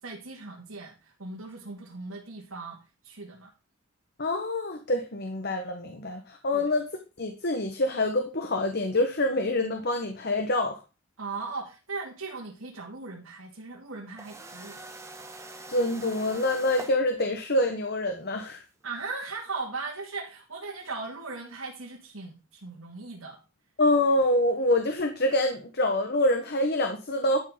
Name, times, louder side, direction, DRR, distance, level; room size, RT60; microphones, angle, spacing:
voice 1, 0.0-2.8 3.0-3.5 6.5-6.7 11.2-14.8 18.8-23.4, right 3 dB, 90° right, -2 dB, 2.5 m, -38 dB
voice 2, 4.2-6.9 7.2-10.8 15.7-18.6 23.8-27.4, left 1 dB, 50° left, 5 dB, 1.4 m, -26 dB
sound 1, 14.2-17.0 18.8-18.9 20.9-21.0, right 2 dB, 15° right, 1.4 m, -43 dB
11.5 x 6.6 x 5.1 m, 0.30 s
head